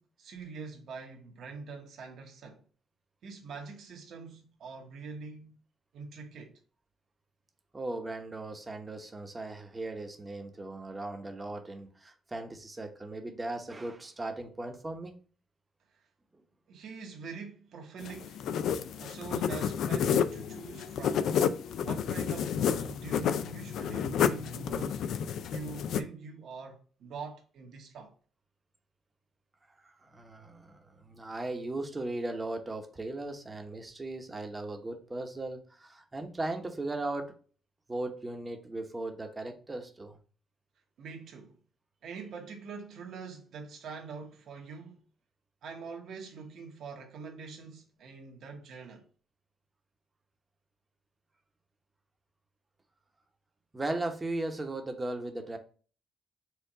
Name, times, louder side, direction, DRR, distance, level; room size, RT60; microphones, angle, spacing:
voice 1, 0.0-2.6 3.2-5.6 5.9-6.6 15.9-16.0 16.7-18.4 18.9-21.3 21.8-25.0 25.5-28.1 41.0-41.6 42.0-45.0 45.6-49.1, right 5 dB, 70° right, 1.1 m, -44 dB
voice 2, 7.7-15.2 29.8-37.4 37.9-40.2 53.7-55.6, right 2 dB, 20° right, 0.9 m, -37 dB
sound 1, 18.0-26.0, left 8 dB, 75° left, 0.3 m, -30 dB
4.5 x 2.4 x 4.8 m
cardioid pair, 90°, 0 cm